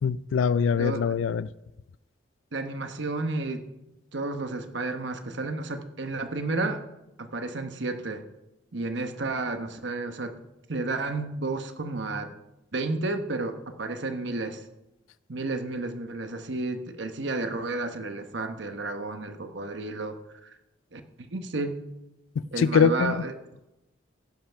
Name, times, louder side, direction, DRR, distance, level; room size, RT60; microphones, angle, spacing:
voice 1, 0.0-1.5 22.6-23.2, left 6 dB, 80° left, 17 dB, 0.3 m, -23 dB
voice 2, 0.8-1.1 2.5-3.7 4.1-6.8 7.2-8.3 8.7-10.4 10.7-12.3 12.7-14.6 15.3-20.5 20.9-21.8 22.5-23.3, right 2 dB, 60° right, 7 dB, 1.0 m, -32 dB
16.5 x 5.8 x 5.7 m, 0.94 s
head